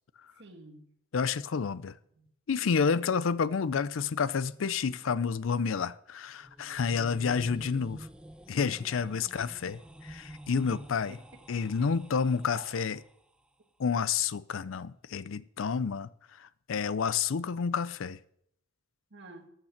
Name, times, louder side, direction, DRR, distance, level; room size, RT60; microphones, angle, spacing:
voice 1, 0.3-0.9 2.1-2.3 10.5-10.8 11.1-11.9 12.5-12.8 19.1-19.5, right 2 dB, 60° right, 1.6 m, -50 dB
voice 2, 1.1-1.9 2.5-8.1 8.5-11.2 11.5-13.0 13.8-16.1 16.4-18.2, left 6 dB, 70° left, 0.5 m, -29 dB
sound 1, 6.3-13.3, right 1 dB, 5° right, 0.3 m, -48 dB
13.5 x 6.7 x 5.8 m
head